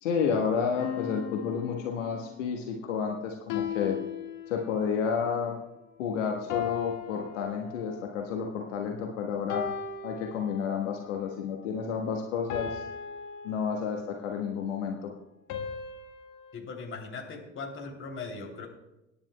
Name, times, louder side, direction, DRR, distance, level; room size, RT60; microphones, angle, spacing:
voice 1, 0.0-4.0 4.5-5.6 6.0-9.6 10.0-12.8 13.4-15.1, left 6 dB, 70° left, 1 dB, 1.4 m, -31 dB
sound 1, 0.8-2.4 3.5-5.0 6.5-8.2 9.5-11.0 12.5-14.2 15.5-16.5, left 8 dB, 50° left, 1.9 m, -37 dB
voice 2, 16.5-18.7, left 4 dB, 30° left, 2 dB, 3.0 m, -39 dB
25.5 x 10.5 x 2.2 m, 0.95 s
figure-of-eight pair, 65°, 39 cm